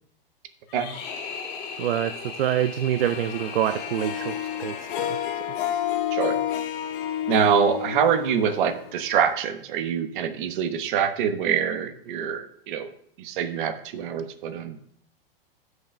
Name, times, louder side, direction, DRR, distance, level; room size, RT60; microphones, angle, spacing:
sound 1, 0.7-5.8, left 5 dB, 35° left, 2.4 m, -38 dB
voice 1, 1.8-5.2, right 11 dB, 75° right, 10 dB, 0.5 m, -26 dB
Harp, 3.0-9.3, left 11 dB, 65° left, 1.0 m, -30 dB
voice 2, 7.3-12.9 13.2-14.8, right 8 dB, 60° right, 9 dB, 1.1 m, -25 dB
16.5 x 6.4 x 2.2 m, 0.67 s
hypercardioid pair, 115°, 29 cm